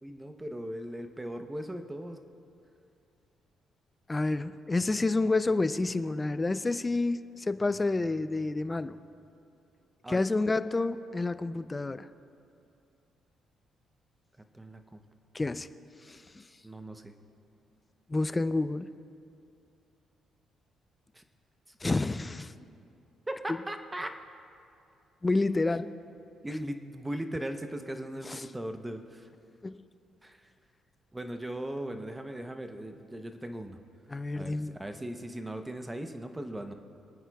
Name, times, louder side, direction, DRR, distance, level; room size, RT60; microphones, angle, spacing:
voice 1, 0.0-2.2 10.0-10.3 14.5-15.0 16.6-17.1 21.1-21.2 21.9-22.0 23.3-24.2 26.4-29.3 30.2-30.4 31.1-33.8 34.3-36.7, right 1 dB, 15° right, 7 dB, 0.7 m, -38 dB
voice 2, 4.1-9.0 10.1-12.0 15.3-15.7 16.1-16.2 18.1-18.9 21.8-22.5 25.2-25.9 28.3-28.4 29.6-29.8 34.1-34.8, left 3 dB, 20° left, 13 dB, 0.4 m, -29 dB
26.5 x 9.3 x 2.3 m, 2.6 s
cardioid pair, 90°, 0 cm